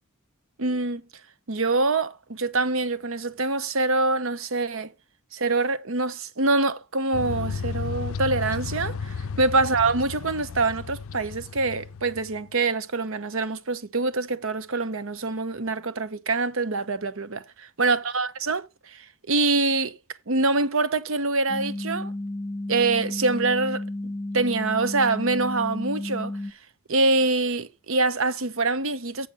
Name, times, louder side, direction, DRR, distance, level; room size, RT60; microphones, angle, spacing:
voice 1, 0.6-1.0 1.5-4.9 5.3-17.4 17.8-19.9 20.3-22.1 22.7-26.3 26.9-29.3, right 3 dB, 65° right, 0.9 m, -25 dB
sound 1, 7.1-12.4, left 5 dB, 70° left, 0.4 m, -33 dB
sound 2, 21.5-26.5, left 1 dB, 20° left, 1.2 m, -32 dB
7.9 x 7.4 x 5.4 m
head